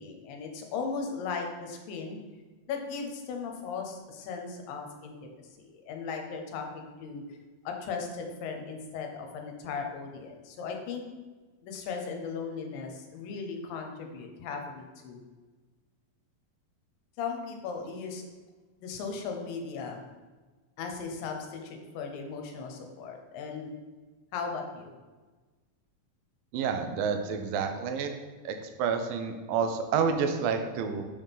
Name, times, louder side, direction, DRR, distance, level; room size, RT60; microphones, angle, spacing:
voice 1, 0.0-2.2 2.7-5.3 5.6-7.4 7.6-11.0 11.6-15.2 17.2-18.2 18.8-20.0 20.8-23.7 24.3-24.9, left 5 dB, 80° left, 3 dB, 2.5 m, -37 dB
voice 2, 26.5-28.1 28.5-31.1, right 6 dB, 85° right, 6 dB, 2.4 m, -29 dB
6.3 x 5.7 x 3.5 m, 1.3 s
omnidirectional pair, 4.0 m